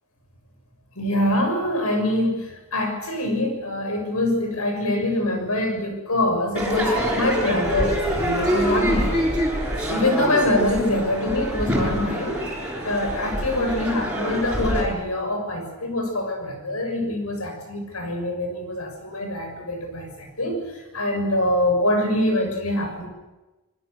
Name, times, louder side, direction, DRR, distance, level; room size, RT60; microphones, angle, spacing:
voice 1, 0.9-9.3 9.9-12.4 12.8-23.1, left 1 dB, 80° left, 4 dB, 6.7 m, -24 dB
Crowd / Fireworks, 6.6-14.8, equal, 5° right, 7.1 m, -25 dB
25.5 x 22.5 x 6.7 m, 1.1 s
head